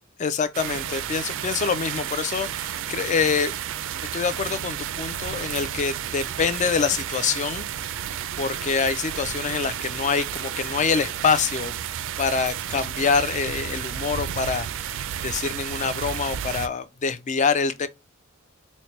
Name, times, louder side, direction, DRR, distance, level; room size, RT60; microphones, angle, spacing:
voice 1, 0.2-3.5 4.1-7.7 8.4-11.7 12.2-17.9, left 5 dB, 35° left, 0.4 m, -25 dB
sound 1, 0.5-16.7, right 10 dB, 65° right, 0.3 m, -32 dB
sound 2, 2.0-12.1, right 1 dB, 80° left, 1.2 m, -51 dB
4.2 x 2.1 x 3.0 m
head